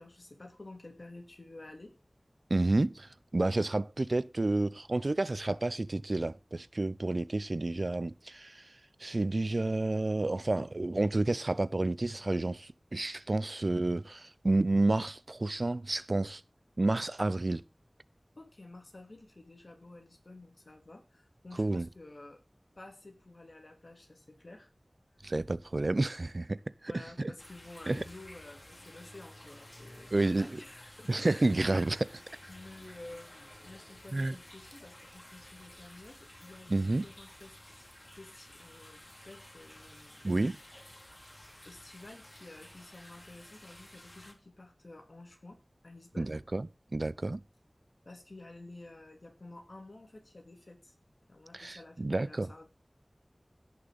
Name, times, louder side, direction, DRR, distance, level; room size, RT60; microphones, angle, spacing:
voice 1, 0.0-1.9 18.4-22.4 22.8-24.7 26.9-31.5 32.5-40.3 41.6-46.4 48.0-50.9 51.3-52.7, left 2 dB, 70° left, 3.3 m, -51 dB
voice 2, 2.5-8.7 9.0-16.4 16.8-17.6 21.6-21.9 25.2-27.3 27.9-28.0 30.1-30.6 31.1-32.2 34.1-34.4 36.7-37.0 40.2-40.6 46.2-46.7 46.9-47.4 51.5-52.5, right 2 dB, 65° right, 0.5 m, -30 dB
sound 1, 27.4-44.3, left 1 dB, 30° left, 2.8 m, -53 dB
16.5 x 6.7 x 4.0 m
wide cardioid pair, 50°, 0 cm